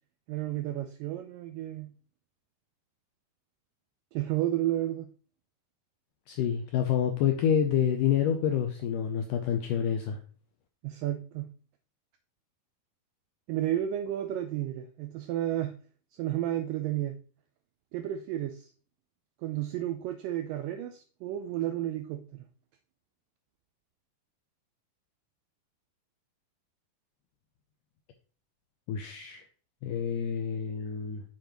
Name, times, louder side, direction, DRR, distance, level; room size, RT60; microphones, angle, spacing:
voice 1, 0.3-1.9 4.1-5.1 10.8-11.5 13.5-15.8 16.1-17.1 17.9-18.7 19.4-22.4, right 13 dB, 85° right, 7 dB, 1.9 m, -32 dB
voice 2, 6.3-10.2 28.9-29.4 29.8-31.2, left 8 dB, 85° left, 5 dB, 1.9 m, -28 dB
7.6 x 6.8 x 3.0 m, 0.40 s
omnidirectional pair, 4.5 m